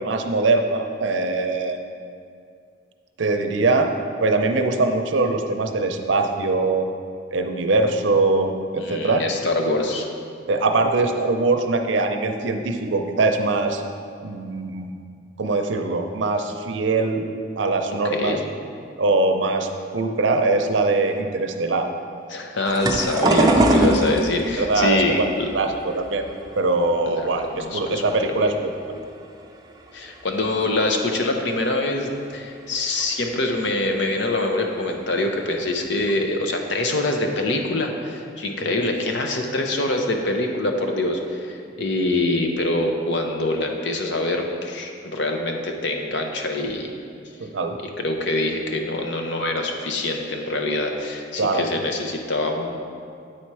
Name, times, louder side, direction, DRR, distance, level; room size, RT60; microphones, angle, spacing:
voice 1, 0.0-1.9 3.2-3.9 4.2-6.9 7.3-9.2 10.5-13.8 14.2-15.0 15.4-17.2 17.6-18.4 19.0-21.9 24.6-25.3 25.5-26.3 26.6-29.0 38.6-38.8 41.8-41.9 47.4-47.8 51.4-51.7, right 3 dB, 75° right, 5 dB, 0.6 m, -22 dB
voice 2, 8.8-10.1 18.1-18.5 22.3-25.5 27.1-27.3 27.5-28.0 28.4-28.5 29.9-46.9 48.0-52.8, left 2 dB, 70° left, 3 dB, 0.7 m, -24 dB
sound 1, 22.7-27.8 28.1-29.0 29.5-29.8 30.1-30.2 31.4-31.5 32.1-32.2 32.7-32.8 33.0-33.3 34.5-34.7 35.3-35.4 35.8-36.2, right 1 dB, 20° right, 0.4 m, -22 dB
8.8 x 4.3 x 4.7 m, 2.3 s
head